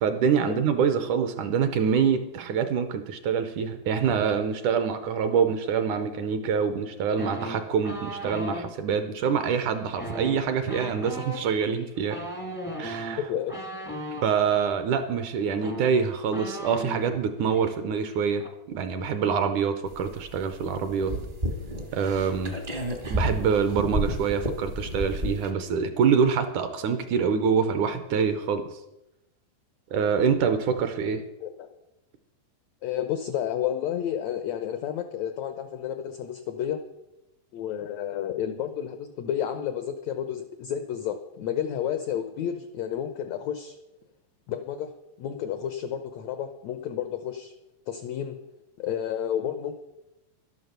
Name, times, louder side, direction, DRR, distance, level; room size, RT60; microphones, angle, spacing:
voice 1, 0.0-12.2 12.8-13.2 14.2-18.4 18.7-21.1 21.9-22.5 23.1-28.8 29.9-31.2, right 6 dB, 70° right, 9 dB, 2.0 m, -25 dB
sound 1, 7.2-8.6 9.9-14.3 15.2-15.3 15.5-17.2 17.5-17.7 18.0-18.5, right 1 dB, 15° left, 0.4 m, -36 dB
voice 2, 13.2-13.7 31.4-31.7 32.8-36.8 37.5-43.8 44.5-44.9 45.2-47.5 47.9-48.4 48.8-49.8, left 9 dB, 90° left, 8 dB, 1.5 m, -31 dB
sound 2, 19.9-25.5, equal, 40° right, 0.7 m, -31 dB
12.0 x 11.0 x 6.6 m, 0.93 s
omnidirectional pair, 4.2 m